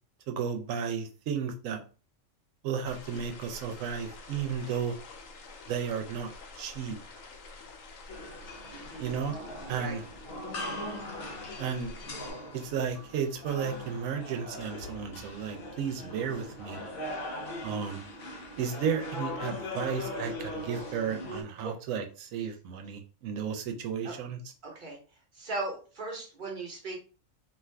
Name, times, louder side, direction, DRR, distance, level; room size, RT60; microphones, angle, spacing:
voice 1, 0.3-1.8 2.6-5.0 5.7-7.0 9.0-9.3 9.7-10.0 11.6-11.9 12.5-16.8 17.6-18.0 18.6-24.4, right 7 dB, 85° right, 6 dB, 1.0 m, -33 dB
sound 1, 2.9-12.3, left 3 dB, 85° left, 1.0 m, -48 dB
sound 2, 8.1-21.4, left 1 dB, 55° left, 0.7 m, -40 dB
voice 2, 8.7-9.1 9.8-10.0 21.6-21.7 24.0-24.2 24.6-25.0 25.3-27.0, right 3 dB, 40° right, -1 dB, 1.1 m, -37 dB
2.5 x 2.5 x 3.3 m, 0.35 s
omnidirectional pair, 1.3 m